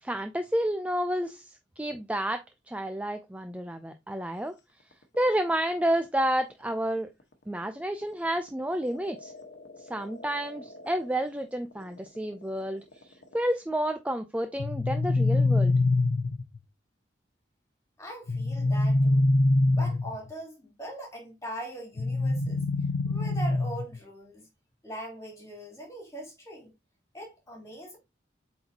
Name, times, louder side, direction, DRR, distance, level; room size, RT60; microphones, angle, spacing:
voice 1, 0.0-4.6 5.1-7.1 7.5-9.3 9.8-12.8 13.3-15.8, right 1 dB, 5° right, 0.4 m, -30 dB
sound 1, 4.6-13.5, left 1 dB, 65° left, 1.2 m, -49 dB
sound 2, 14.6-16.6 18.3-20.3 22.0-24.0, left 2 dB, 85° left, 0.7 m, -24 dB
voice 2, 18.0-19.2 19.7-22.6 23.0-24.5 24.8-26.7 27.1-28.0, equal, 15° left, 3.3 m, -41 dB
7.9 x 4.3 x 2.8 m
head